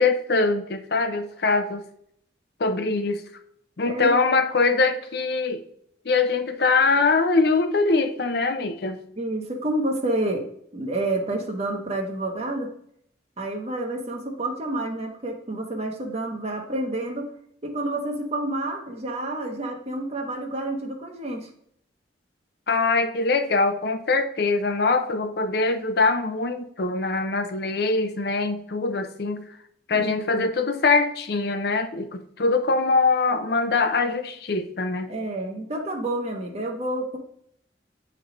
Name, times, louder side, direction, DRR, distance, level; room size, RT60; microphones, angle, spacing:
voice 1, 0.0-1.8 2.6-3.2 3.8-5.6 6.1-9.0 22.7-29.4 29.9-35.1, left 3 dB, 60° left, 9 dB, 0.6 m, -23 dB
voice 2, 9.2-10.5 10.7-12.7 13.4-17.3 17.6-21.5 29.9-30.5 35.1-37.2, right 1 dB, 35° right, 2 dB, 0.8 m, -29 dB
9.3 x 3.3 x 3.8 m, 0.69 s
head